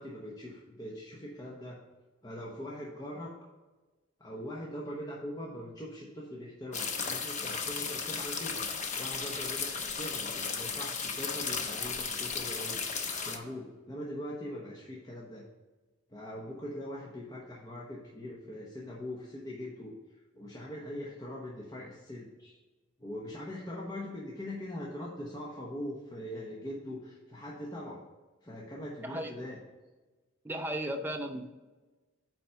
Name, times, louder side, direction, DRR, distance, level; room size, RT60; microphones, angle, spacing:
voice 1, 0.0-1.8 2.2-3.3 4.2-8.6 8.9-12.8 13.2-15.4 16.1-19.9 20.3-22.6 23.0-28.0 28.4-29.6, left 1 dB, 20° left, -4 dB, 1.0 m, -41 dB
sound 1, 6.7-13.4, left 5 dB, 40° left, 0.8 m, -35 dB
voice 2, 30.4-31.5, right 1 dB, 10° right, 3 dB, 0.5 m, -35 dB
8.9 x 4.0 x 5.6 m, 1.2 s
head